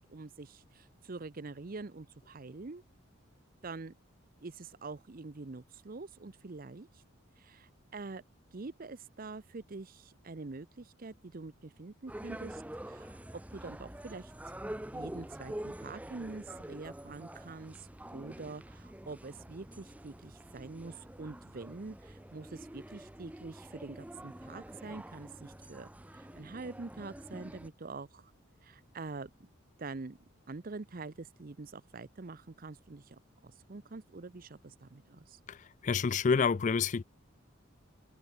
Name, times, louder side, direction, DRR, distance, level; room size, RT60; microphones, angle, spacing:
voice 1, 0.1-2.8 3.6-3.9 4.4-6.9 7.4-8.2 8.5-13.2 13.5-14.3 14.9-17.9 18.1-25.9 26.1-28.3 28.6-29.5 29.8-30.2 30.5-35.4, right 3 dB, 45° right, 0.7 m, -45 dB
sound 1, 12.1-27.7, right 1 dB, 5° right, 0.6 m, -46 dB
voice 2, 35.5-37.0, left 5 dB, 35° left, 0.4 m, -28 dB
head